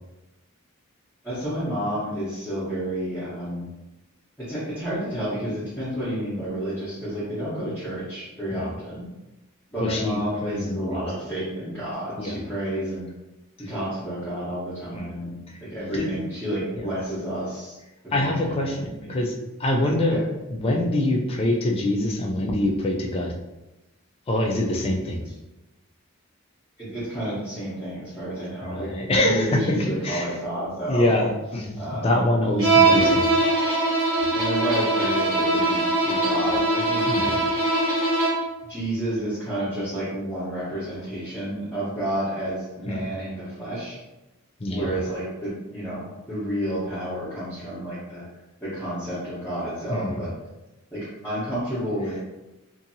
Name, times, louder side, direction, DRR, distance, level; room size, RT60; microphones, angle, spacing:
voice 1, 1.2-3.7 4.4-9.1 9.7-13.1 13.7-17.8 18.1-19.1 20.1-20.2 26.8-31.1 31.8-32.1 32.8-33.1 34.3-37.4 38.7-44.0 44.7-48.2 48.6-50.3 50.9-52.1, right 1 dB, 10° left, -13 dB, 0.9 m, -30 dB
voice 2, 9.8-11.0 12.2-12.4 14.9-15.1 15.5-15.6 15.9-16.1 16.7-16.8 18.1-20.2 20.5-23.3 24.3-25.2 28.6-30.4 30.9-33.3 37.1-37.3 42.9-43.1 44.6-44.9 49.9-50.2, left 1 dB, 25° left, 1 dB, 0.4 m, -25 dB
Bowed string instrument, 32.6-38.5, right 2 dB, 65° right, 1.3 m, -21 dB
2.7 x 2.6 x 2.7 m, 1.0 s
head